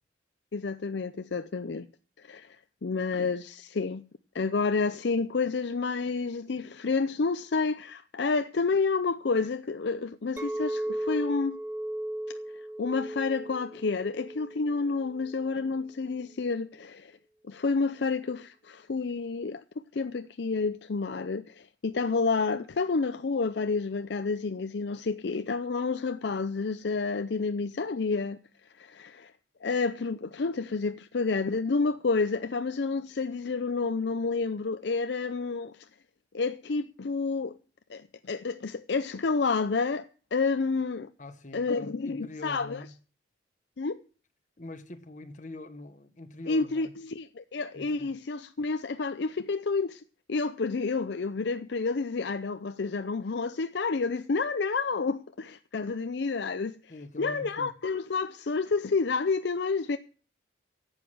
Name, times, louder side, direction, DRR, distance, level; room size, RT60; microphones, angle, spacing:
voice 1, 0.5-1.9 2.2-2.6 2.8-4.0 4.3-11.6 12.8-17.1 17.4-19.6 19.9-28.4 28.8-29.3 29.6-35.7 36.3-37.6 37.9-41.1 41.5-42.8 43.8-44.0 46.5-50.0 50.3-56.8 57.2-60.0, left 4 dB, 65° left, 0.5 m, -29 dB
Chink clink, 10.4-15.6, right 1 dB, 10° right, 0.8 m, -36 dB
voice 2, 41.2-42.9 44.6-46.9 47.7-48.2 56.9-57.7, left 2 dB, 40° left, 1.2 m, -44 dB
11.5 x 8.1 x 7.9 m
head